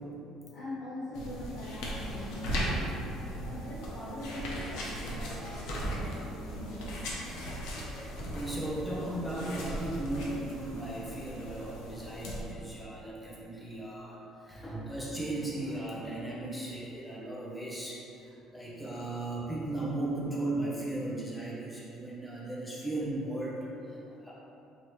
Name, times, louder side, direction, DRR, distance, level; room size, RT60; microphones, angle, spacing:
voice 1, 0.4-3.0 3.4-7.1 7.4-7.5, left 1 dB, 55° left, -14 dB, 1.2 m, -42 dB
sound 1, 1.1-12.4, equal, 85° left, 0.7 m, -37 dB
voice 2, 7.7-24.3, right 1 dB, 5° left, -6 dB, 0.6 m, -37 dB
4.6 x 2.8 x 3.1 m, 2.8 s
cardioid pair, 175°, 0 cm